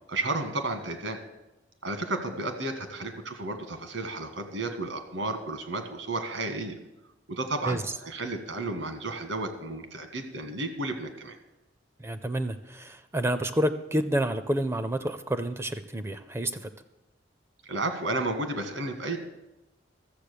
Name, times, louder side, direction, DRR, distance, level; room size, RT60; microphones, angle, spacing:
voice 1, 0.1-1.2 1.8-6.7 7.3-11.4 17.6-19.2, right 2 dB, 80° right, 7 dB, 1.7 m, -32 dB
voice 2, 12.0-16.7, right 1 dB, 15° right, 10 dB, 0.5 m, -29 dB
13.5 x 7.4 x 6.8 m, 0.96 s
head